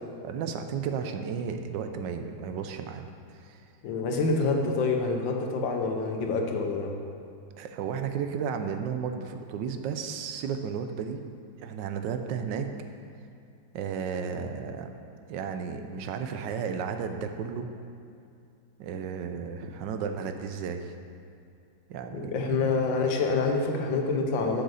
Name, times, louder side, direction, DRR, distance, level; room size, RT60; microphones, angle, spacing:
voice 1, 0.2-3.1 3.4-3.6 7.6-11.2 11.6-12.7 13.7-14.9 15.3-17.7 18.8-20.9 21.9-22.6, right 6 dB, 80° right, 7 dB, 1.3 m, -33 dB
voice 2, 3.8-6.9 22.1-24.6, left 3 dB, 85° left, 2 dB, 1.7 m, -27 dB
8.0 x 6.6 x 6.4 m, 2.5 s
omnidirectional pair, 2.0 m